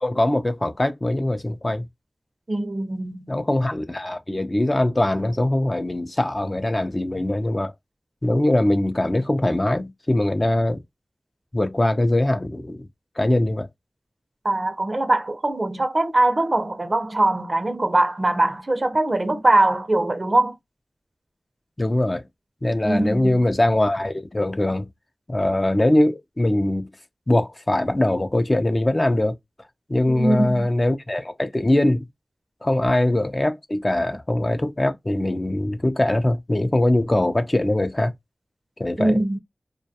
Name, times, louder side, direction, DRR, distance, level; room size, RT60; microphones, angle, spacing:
voice 1, 0.0-1.9 3.3-7.7 8.2-10.8 11.5-12.9 13.2-13.7 21.8-22.2 22.6-24.9 25.3-26.9 27.3-29.4 29.9-32.0 32.6-38.1 38.8-39.2, left 1 dB, 35° left, 0.4 m, -22 dB
voice 2, 2.5-3.3 14.4-20.6 22.8-23.3 30.1-30.7 39.0-39.4, right 2 dB, 45° right, 0.5 m, -21 dB
2.2 x 2.2 x 2.7 m
cardioid pair, 45°, 0 cm